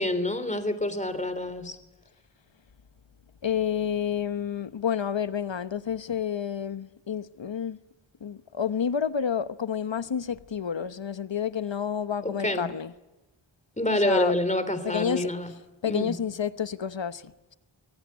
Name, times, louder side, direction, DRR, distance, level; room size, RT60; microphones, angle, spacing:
voice 1, 0.0-1.8 12.2-12.7 13.8-15.5 15.9-16.2, left 1 dB, 15° left, 3.3 m, -27 dB
voice 2, 3.4-7.8 8.2-12.9 14.0-14.3 14.8-15.3 15.8-17.5, left 8 dB, 65° left, 1.0 m, -29 dB
24.5 x 17.5 x 9.6 m
wide cardioid pair, 45°, 48 cm